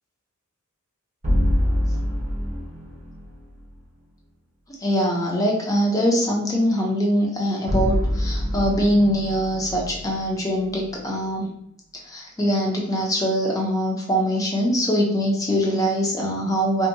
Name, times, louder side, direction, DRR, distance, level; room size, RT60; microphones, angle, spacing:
sound 1, 1.2-3.4 7.7-10.9, equal, 35° right, 0.6 m, -25 dB
voice 1, 4.8-11.5 12.1-16.9, equal, 15° left, -2 dB, 0.5 m, -22 dB
2.6 x 2.1 x 2.6 m, 0.72 s
head